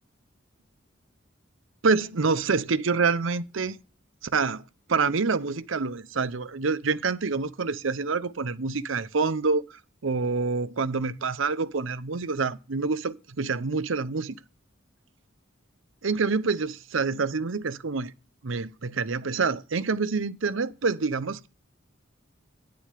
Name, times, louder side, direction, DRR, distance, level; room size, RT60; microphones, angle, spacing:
voice 1, 1.8-3.8 4.2-4.6 4.9-14.4 16.0-18.1 18.4-21.5, right 4 dB, 75° right, 0.7 m, -27 dB
9.6 x 6.9 x 4.9 m
head